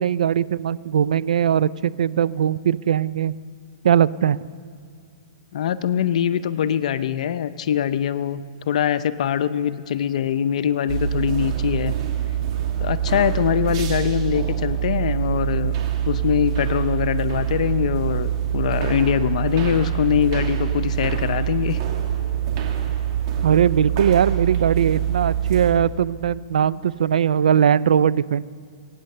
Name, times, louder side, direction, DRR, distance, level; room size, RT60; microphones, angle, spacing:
voice 1, 0.0-3.3 3.8-4.4 23.4-28.4, right 9 dB, 80° right, 18 dB, 0.4 m, -20 dB
voice 2, 5.5-11.9 12.8-15.7 16.1-21.8, left 9 dB, 65° left, 13 dB, 0.6 m, -23 dB
sound 1, 10.9-25.7, right 10 dB, 50° right, 2.3 m, -25 dB
22.5 x 9.4 x 6.6 m, 2.3 s
hypercardioid pair, 135°, 4 cm